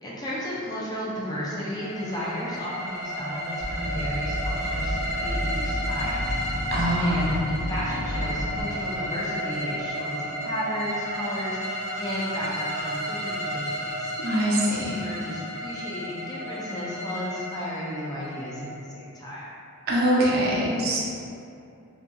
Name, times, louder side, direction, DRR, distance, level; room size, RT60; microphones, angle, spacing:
voice 1, 0.0-6.4 7.0-11.6 12.0-14.1 14.6-19.5, equal, 20° left, -7 dB, 0.4 m, -34 dB
sound 1, 1.2-19.1, equal, 70° left, 0.9 m, -33 dB
sound 2, 3.6-8.6, equal, 50° left, 1.2 m, -31 dB
voice 2, 6.7-7.3 14.2-14.9 19.9-21.0, right 1 dB, 45° right, -4 dB, 0.4 m, -23 dB
2.6 x 2.5 x 2.3 m, 2.5 s
head